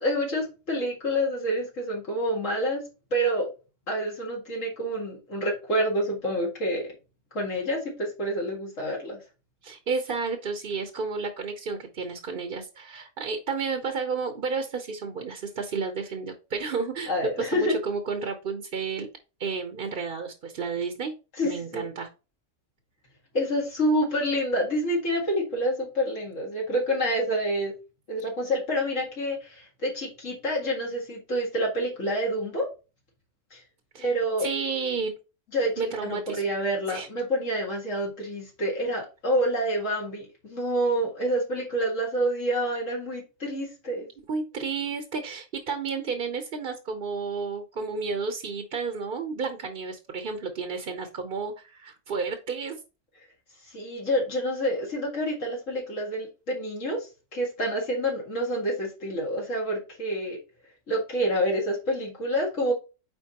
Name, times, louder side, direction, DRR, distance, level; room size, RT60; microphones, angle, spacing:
voice 1, 0.0-2.8 3.1-3.5 3.9-6.8 7.3-9.2 17.1-17.8 21.4-21.8 23.3-27.7 28.1-32.7 33.5-33.6 34.0-34.5 35.5-44.1 53.7-60.4 60.9-62.7, equal, 70° left, -2 dB, 2.2 m, -28 dB
voice 2, 9.6-19.1 19.4-21.1 21.4-22.1 33.9-34.1 34.4-35.1 35.8-36.4 36.9-37.1 44.3-52.8, right 4 dB, 50° right, 6 dB, 0.9 m, -31 dB
9.0 x 4.0 x 2.9 m, 0.31 s
omnidirectional pair, 1.3 m